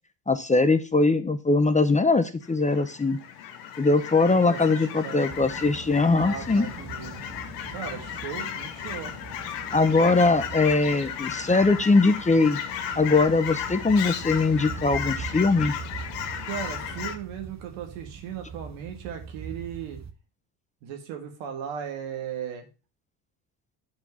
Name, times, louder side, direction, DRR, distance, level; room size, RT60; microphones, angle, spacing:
voice 1, 0.3-3.2 3.8-6.7 9.7-12.6 13.0-15.7, left 3 dB, 15° left, 11 dB, 0.7 m, -21 dB
Fowl / Chirp tweet, 2.4-17.2, left 9 dB, 85° left, 1.1 m, -35 dB
voice 2, 4.4-5.2 6.1-7.2 7.7-9.1 16.4-20.0 20.8-22.7, right 8 dB, 80° right, 4 dB, 1.9 m, -37 dB
sound 1, 5.3-20.1, right 6 dB, 35° right, 1.1 m, -42 dB
7.9 x 4.6 x 5.6 m, 0.31 s
hypercardioid pair, 70°, 48 cm